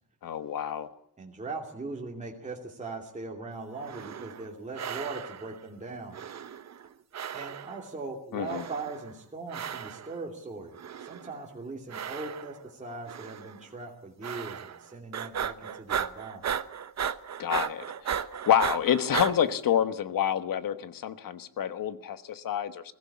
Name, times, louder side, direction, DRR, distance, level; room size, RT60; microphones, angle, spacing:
voice 1, 0.2-0.9 8.3-8.6 17.4-22.9, left 9 dB, 70° left, 11 dB, 1.3 m, -28 dB
voice 2, 1.2-6.2 7.3-16.4, right 3 dB, 20° right, -1 dB, 2.7 m, -40 dB
sound 1, 3.8-4.5 4.8-5.6 6.1-6.9 7.1-7.9 8.5-9.1 9.5-10.2 10.7-11.4 11.9-12.7 13.1-13.6 14.2-14.8 15.1-19.3, right 8 dB, 50° right, 0.9 m, -35 dB
21.5 x 16.5 x 8.6 m, 0.73 s
wide cardioid pair, 155°, 35 cm